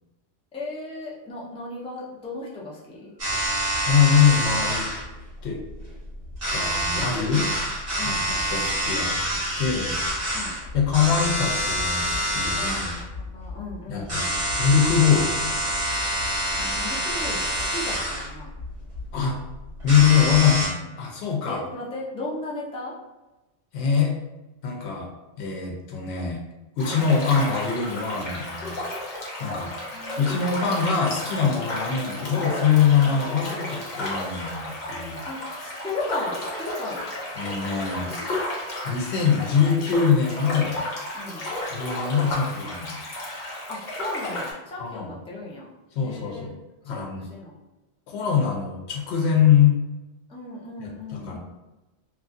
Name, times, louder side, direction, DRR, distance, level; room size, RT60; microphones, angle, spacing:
voice 1, 0.5-3.1 7.3-7.5 8.0-8.8 10.3-10.6 12.5-14.1 16.6-18.5 21.5-22.9 29.9-30.8 35.2-37.1 41.1-41.5 43.7-45.7 46.0-46.5 46.8-47.6 50.3-51.4, left 2 dB, 10° left, -5 dB, 0.3 m, -36 dB
sound 1, 3.2-20.7, equal, 55° right, 1.6 m, -27 dB
voice 2, 3.8-4.9 5.4-5.6 6.5-7.5 8.0-8.2 8.5-9.2 9.6-10.0 10.7-13.0 13.9-14.3 14.6-15.5 19.1-19.4 19.8-21.6 23.7-24.1 24.6-25.1 25.4-26.4 26.8-28.8 29.4-29.7 30.2-35.2 37.4-38.1 38.8-40.8 41.7-43.0 44.8-45.1 45.9-46.5 46.8-47.3 48.1-49.8 50.8-51.4, left 7 dB, 85° left, -1 dB, 0.9 m, -23 dB
sound 2, 26.8-44.5, left 1 dB, 50° left, 0.8 m, -33 dB
3.0 x 2.4 x 2.5 m, 1.1 s
omnidirectional pair, 1.1 m